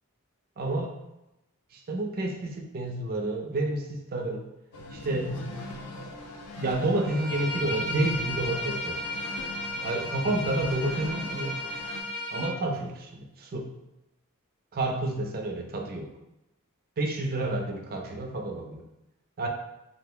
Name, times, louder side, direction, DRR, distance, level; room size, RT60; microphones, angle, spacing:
voice 1, 0.6-0.9 1.7-4.5 4.9-5.3 6.6-9.0 9.8-11.6 12.3-13.7 14.7-16.1 17.0-18.8 19.4-19.5, right 2 dB, 40° right, 2 dB, 0.4 m, -30 dB
sound 1, 4.7-12.0, left 1 dB, 85° left, 0.5 m, -39 dB
Bowed string instrument, 7.0-12.5, left 1 dB, 50° left, 0.7 m, -34 dB
2.8 x 2.1 x 3.6 m, 0.92 s
head